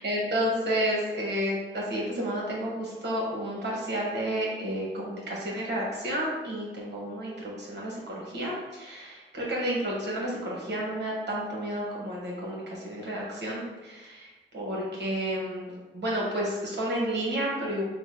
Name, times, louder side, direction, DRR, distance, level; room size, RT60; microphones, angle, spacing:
voice 1, 0.0-17.8, equal, 55° right, -4 dB, 1.4 m, -31 dB
4.0 x 2.2 x 3.8 m, 1.2 s
cardioid pair, 45°, 21 cm